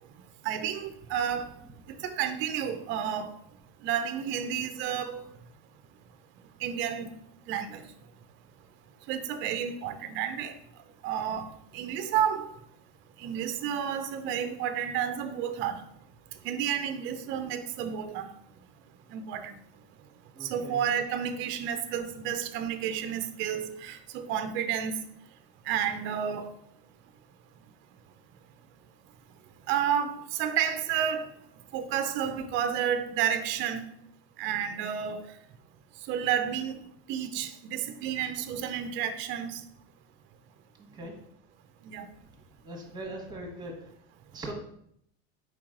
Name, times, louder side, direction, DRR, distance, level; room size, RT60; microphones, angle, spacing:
voice 1, 0.4-1.5 2.0-3.3 3.8-5.2 6.6-7.1 7.5-7.8 9.1-10.6 11.0-12.5 13.2-15.8 16.4-18.3 19.1-19.6 20.4-24.9 25.7-26.5 29.7-31.3 31.7-33.8 34.4-35.3 36.1-36.8 37.1-39.6 41.8-42.1, right 9 dB, 40° right, 0.4 m, -31 dB
voice 2, 20.3-20.8 40.9-41.1 42.6-43.7 44.3-44.5, right 1 dB, 10° right, 1.0 m, -40 dB
4.6 x 3.0 x 3.7 m
supercardioid pair, 135°, 33 cm